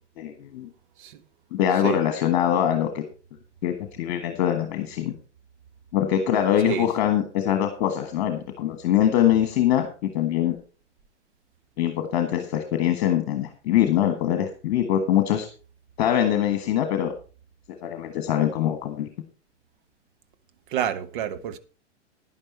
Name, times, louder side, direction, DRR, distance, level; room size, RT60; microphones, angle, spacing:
voice 1, 0.2-0.7 1.5-3.0 3.6-5.1 5.9-10.6 11.8-15.5 16.0-17.1 17.8-19.1, left 10 dB, 40° left, 1.6 m, -23 dB
voice 2, 20.7-21.6, right 10 dB, 45° right, 1.1 m, -28 dB
10.5 x 10.5 x 4.4 m
figure-of-eight pair, 100°, 36 cm